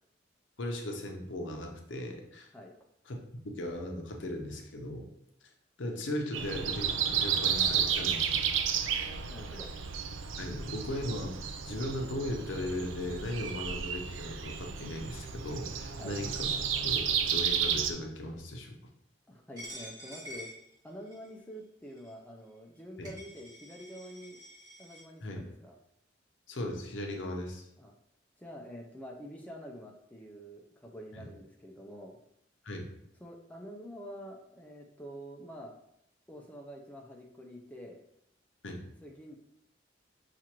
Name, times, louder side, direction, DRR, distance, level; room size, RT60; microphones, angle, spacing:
voice 1, 0.6-2.5 3.1-3.2 3.4-5.1 5.8-8.5 10.4-16.5 16.8-18.7 23.0-23.1 25.2-25.4 26.5-27.7 31.1-31.2 32.6-32.9 38.6-38.8, left 1 dB, 75° left, 2 dB, 0.7 m, -37 dB
Breathing, 6.3-17.9, right 7 dB, 80° right, 0.4 m, -32 dB
voice 2, 9.3-9.7 15.9-16.2 19.3-20.5 20.8-24.4 24.8-25.7 27.8-27.9 28.4-32.2 33.2-35.7 36.3-38.0 39.0-39.4, equal, 10° left, 0 dB, 0.4 m, -47 dB
Coin (dropping), 19.6-21.3 22.0-22.1 22.8-22.9 23.0-25.0, equal, 20° right, 1.5 m, -47 dB
5.9 x 2.5 x 2.9 m, 0.78 s
head